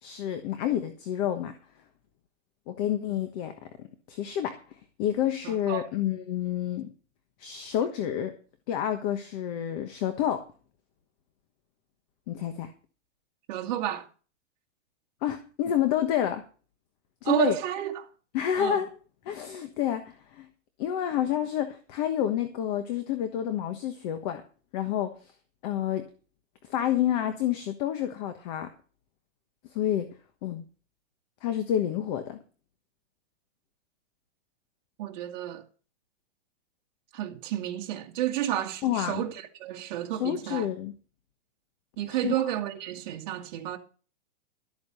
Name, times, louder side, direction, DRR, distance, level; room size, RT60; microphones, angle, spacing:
voice 1, 0.0-1.6 2.7-3.5 4.1-4.6 5.0-6.9 7.4-8.3 8.7-10.4 12.3-12.7 15.2-16.4 17.2-17.6 18.3-18.9 19.2-20.5 20.8-24.4 24.7-25.1 25.6-26.1 26.7-28.7 29.7-30.1 30.4-30.6 31.4-32.4 38.8-39.2 40.1-40.9 42.1-42.3, left 10 dB, 35° left, 1.3 m, -29 dB
voice 2, 5.4-5.9 13.5-14.1 17.2-18.1 18.6-18.8 35.0-35.6 37.1-39.3 39.6-40.7 42.0-43.8, right 12 dB, 40° right, 2.1 m, -31 dB
13.0 x 8.8 x 5.5 m
supercardioid pair, 165°, 37 cm